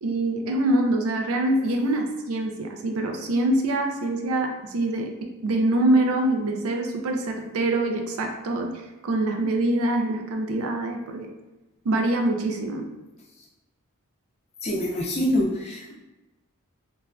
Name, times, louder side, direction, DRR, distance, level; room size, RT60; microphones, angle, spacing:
voice 1, 0.0-5.1 5.4-11.3 11.8-12.9, right 1 dB, 75° right, 3 dB, 0.4 m, -24 dB
voice 2, 14.6-15.9, left 1 dB, 30° left, -3 dB, 0.5 m, -25 dB
3.1 x 2.4 x 2.2 m, 1.0 s
head